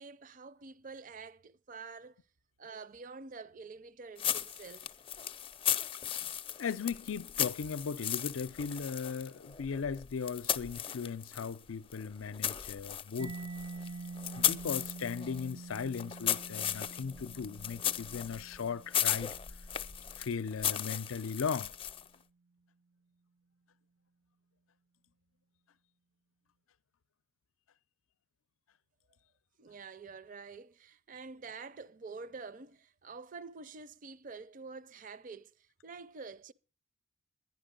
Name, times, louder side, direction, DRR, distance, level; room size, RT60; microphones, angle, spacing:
voice 1, 0.0-2.2 2.6-4.9 29.6-36.5, right 4 dB, 40° right, 0.5 m, -47 dB
sound 1, 4.2-11.6 11.9-22.1, left 10 dB, 25° left, 0.5 m, -36 dB
voice 2, 6.6-13.5 14.4-19.4 20.2-21.7, left 6 dB, 85° left, 0.5 m, -37 dB
Mallet percussion, 13.2-20.7, right 3 dB, 90° right, 0.8 m, -47 dB
11.5 x 10.5 x 5.2 m
head